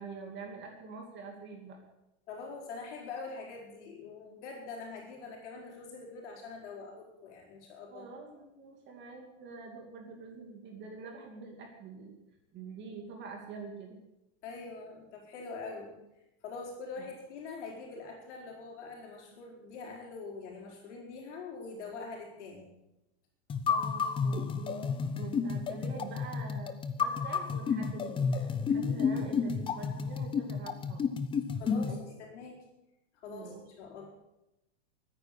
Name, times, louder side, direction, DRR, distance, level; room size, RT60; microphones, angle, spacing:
voice 1, 0.0-1.8 7.9-12.2 12.5-14.0 17.0-17.1 23.7-26.7 27.0-31.2 31.9-32.1 33.3-33.6, right 4 dB, 30° right, 2 dB, 2.6 m, -45 dB
voice 2, 2.3-8.1 14.4-16.0 16.4-22.7 31.6-32.6 33.1-34.1, left 4 dB, 65° left, -1 dB, 4.4 m, -44 dB
sound 1, 23.5-32.0, left 6 dB, 15° left, 0.7 m, -31 dB
14.0 x 9.8 x 8.4 m, 0.92 s
supercardioid pair, 150°, 37 cm